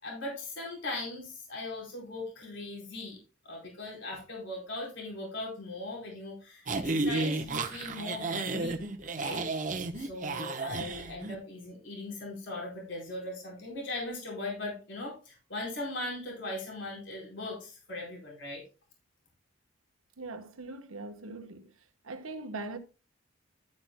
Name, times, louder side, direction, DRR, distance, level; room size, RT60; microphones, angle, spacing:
voice 1, 0.0-3.2 3.4-8.8 9.1-9.5 10.0-18.6, left 2 dB, 60° left, 4.3 m, -39 dB
sound 1, 6.7-11.3, right 3 dB, 40° right, 1.0 m, -32 dB
voice 2, 20.2-22.8, right 3 dB, 85° right, 1.2 m, -41 dB
12.0 x 8.7 x 2.2 m
head